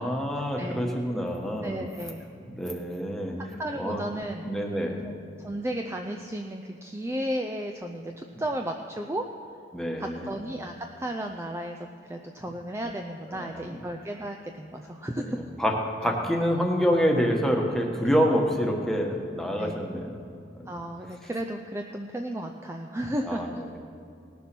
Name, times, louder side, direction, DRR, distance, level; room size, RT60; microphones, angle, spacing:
voice 1, 0.0-1.9 2.5-3.4 3.8-4.0 4.4-5.0 9.7-10.4 13.3-13.7 15.3-15.7 16.0-20.3 20.6-20.7 23.2-23.8, equal, ahead, 1 dB, 1.3 m, -27 dB
voice 2, 1.6-2.2 3.6-4.5 5.4-9.3 10.0-11.8 12.1-15.4 16.0-16.1 18.0-18.2 19.6-19.8 20.7-23.6, right 1 dB, 15° right, 3 dB, 0.5 m, -34 dB
18.5 x 7.0 x 6.1 m, 2.5 s
head